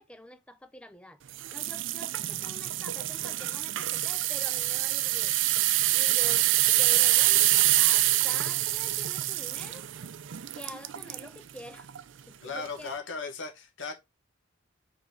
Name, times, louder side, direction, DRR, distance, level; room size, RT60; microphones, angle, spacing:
voice 1, 0.0-5.4 5.9-9.8 10.5-11.9 12.3-13.0, equal, 5° left, 0.6 m, -46 dB
sound 1, 1.4-11.3 11.8-12.0 12.6-12.7, right 15 dB, 70° right, 0.5 m, -26 dB
voice 2, 12.4-13.9, left 4 dB, 70° left, 1.7 m, -37 dB
5.2 x 4.7 x 3.9 m
head